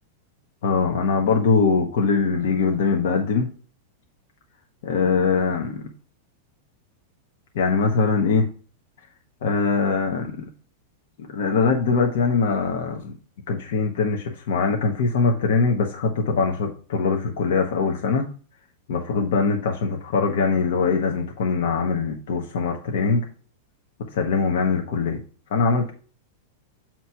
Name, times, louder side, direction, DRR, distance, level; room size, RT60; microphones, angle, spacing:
voice 1, 0.6-3.5 4.8-5.9 7.5-8.5 9.4-10.5 11.2-13.1 13.5-18.3 18.9-23.3 24.1-25.2 25.5-25.9, left 4 dB, 70° left, 2 dB, 1.2 m, -22 dB
7.4 x 3.1 x 5.7 m, 0.40 s
supercardioid pair, 160°, 0 cm